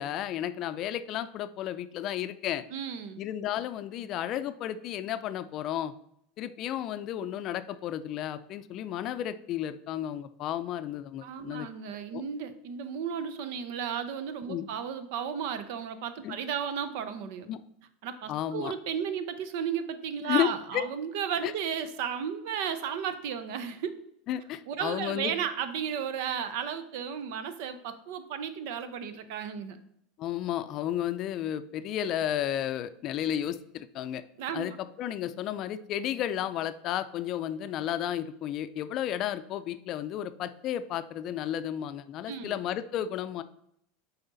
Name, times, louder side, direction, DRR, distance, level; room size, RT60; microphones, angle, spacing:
voice 1, 0.0-2.6 3.2-5.9 6.4-11.7 12.1-12.2 14.5-14.7 16.2-16.4 17.5-17.6 18.3-18.7 20.3-20.8 21.4-21.5 24.3-25.3 30.2-34.2 34.5-34.7 35.0-43.4, left 11 dB, 50° left, 12 dB, 0.4 m, -32 dB
voice 2, 2.7-3.2 11.2-17.5 18.0-24.0 24.7-29.8 34.4-34.8 42.3-42.6, right 8 dB, 65° right, 11 dB, 0.7 m, -34 dB
6.7 x 4.2 x 4.0 m, 0.73 s
hypercardioid pair, 95°, 0 cm